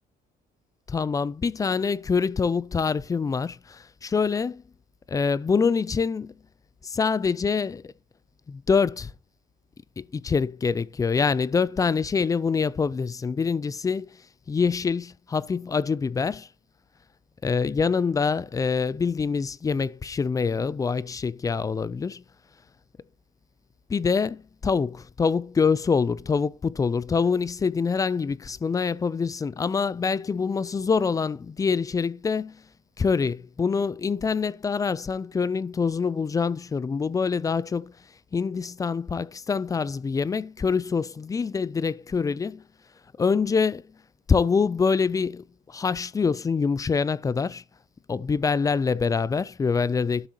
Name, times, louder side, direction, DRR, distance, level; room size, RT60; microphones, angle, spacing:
voice 1, 0.9-4.6 5.1-6.3 6.8-7.9 8.5-9.1 10.0-14.1 14.5-16.5 17.4-22.2 23.9-32.5 33.0-37.9 38.3-42.6 43.2-43.8 44.3-47.6 48.1-50.3, left 5 dB, 20° left, 0.4 m, -25 dB
12.0 x 6.3 x 2.9 m
cardioid pair, 110°, 17 cm